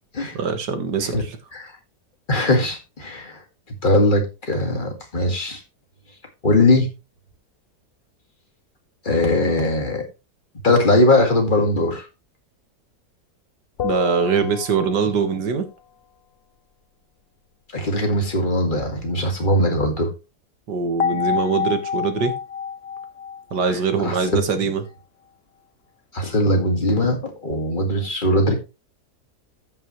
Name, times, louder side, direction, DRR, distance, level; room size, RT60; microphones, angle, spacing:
voice 1, 0.3-1.4 13.8-15.7 20.7-22.4 23.5-24.8, right 5 dB, 80° right, 2.0 m, -22 dB
voice 2, 2.3-3.4 3.8-5.6 6.4-6.9 9.0-10.0 10.6-12.1 17.7-20.1 23.7-24.4 26.1-28.6, left 1 dB, 30° left, 2.2 m, -20 dB
sound 1, 13.8-15.3 21.0-24.3, left 7 dB, 60° left, 0.6 m, -28 dB
14.5 x 5.9 x 3.1 m
omnidirectional pair, 1.8 m